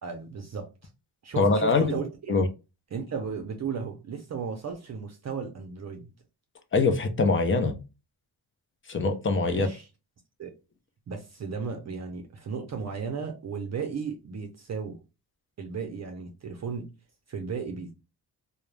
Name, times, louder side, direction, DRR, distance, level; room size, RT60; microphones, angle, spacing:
voice 1, 0.0-0.7 1.2-2.3 2.9-6.1 9.5-9.9 10.4-10.5 11.1-15.0 15.6-16.9 17.3-17.9, right 6 dB, 40° right, 0.5 m, -35 dB
voice 2, 1.4-2.0 2.3-2.4 6.7-7.8 8.9-9.7, left 3 dB, 30° left, 0.5 m, -23 dB
2.3 x 2.1 x 3.1 m
cardioid pair, 110°, 40 cm